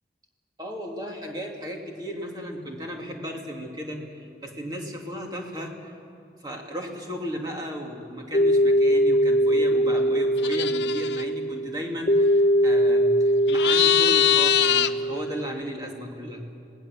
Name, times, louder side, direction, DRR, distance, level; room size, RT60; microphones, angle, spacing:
voice 1, 0.6-5.8 6.4-16.4, equal, 20° right, 0 dB, 2.5 m, -35 dB
sound 1, 8.3-15.6, equal, 40° left, 0.9 m, -22 dB
sound 2, 10.4-11.2 13.5-14.9, left 12 dB, 75° left, 0.7 m, -22 dB
26.5 x 18.5 x 7.4 m, 2.7 s
head